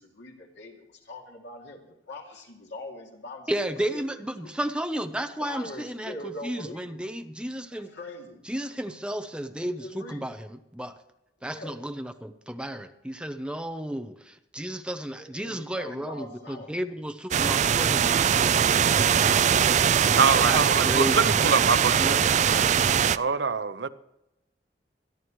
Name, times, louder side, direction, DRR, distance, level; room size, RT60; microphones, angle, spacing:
voice 1, 0.0-3.5 3.9-4.5 5.4-7.0 7.7-8.4 9.8-10.3 11.4-11.8 15.1-16.8, left 1 dB, 90° left, -1 dB, 2.8 m, -42 dB
voice 2, 3.5-7.9 8.4-11.0 11.4-18.7 19.1-19.4 20.4-22.3, right 1 dB, 5° right, 8 dB, 0.8 m, -33 dB
sound 1, 17.3-23.2, right 8 dB, 40° right, 0.4 m, -21 dB
voice 3, 20.1-22.7 23.2-23.9, right 5 dB, 75° right, 12 dB, 0.8 m, -25 dB
25.0 x 11.0 x 3.2 m, 0.89 s
head